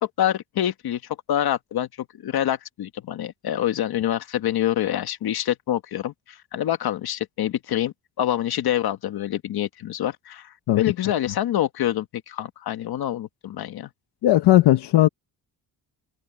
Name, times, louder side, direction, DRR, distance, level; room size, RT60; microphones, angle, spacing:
voice 1, 0.0-13.9, left 11 dB, 70° left, 1.7 m, -26 dB
voice 2, 14.2-15.1, left 14 dB, 85° left, 1.1 m, -16 dB
open air
cardioid pair, 140°, 39 cm